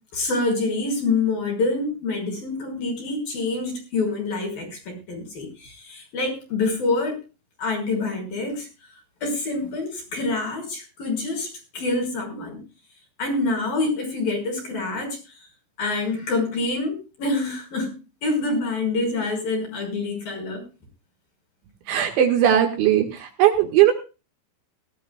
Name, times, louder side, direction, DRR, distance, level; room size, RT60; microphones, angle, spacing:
voice 1, 0.1-7.2 7.6-8.7 9.2-12.6 13.2-15.2 15.8-20.6, left 3 dB, 45° left, 2 dB, 7.1 m, -26 dB
voice 2, 21.9-23.9, right 11 dB, 70° right, 4 dB, 3.8 m, -18 dB
18.5 x 15.0 x 2.4 m, 0.32 s
omnidirectional pair, 6.0 m